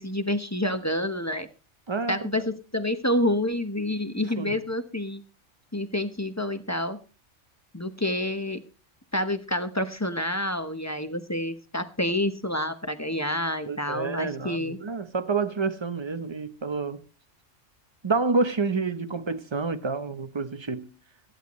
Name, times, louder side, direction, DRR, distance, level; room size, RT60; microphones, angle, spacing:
voice 1, 0.0-1.5 2.1-5.2 5.7-7.0 7.7-8.6 9.1-14.8, left 1 dB, 15° left, 1.0 m, -28 dB
voice 2, 1.9-2.5 4.4-4.5 13.6-17.0 18.0-20.9, right 4 dB, 25° right, 0.8 m, -28 dB
18.0 x 14.0 x 3.1 m
omnidirectional pair, 1.2 m